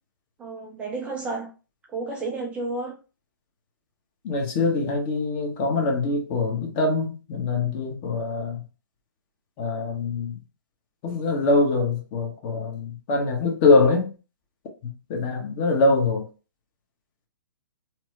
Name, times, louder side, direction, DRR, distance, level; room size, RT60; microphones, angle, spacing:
voice 1, 0.4-1.5 1.9-3.0, right 3 dB, 10° right, 0.3 m, -31 dB
voice 2, 4.2-8.6 9.6-10.4 11.0-14.1 15.1-16.2, left 3 dB, 30° left, 0.8 m, -23 dB
2.9 x 2.0 x 3.0 m
figure-of-eight pair, 130°, 12 cm